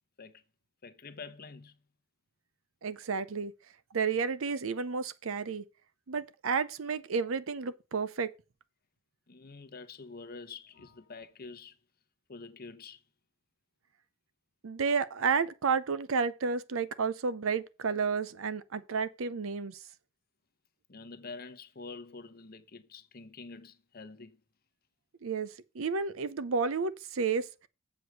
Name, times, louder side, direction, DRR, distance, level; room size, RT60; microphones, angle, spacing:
voice 1, 0.8-1.8 9.3-11.8 12.3-13.0 20.9-24.4, left 4 dB, 45° left, 0.9 m, -47 dB
voice 2, 2.8-3.5 3.9-5.6 6.1-8.3 14.6-19.8 25.2-27.7, right 5 dB, 70° right, 0.6 m, -31 dB
7.9 x 4.8 x 6.4 m
head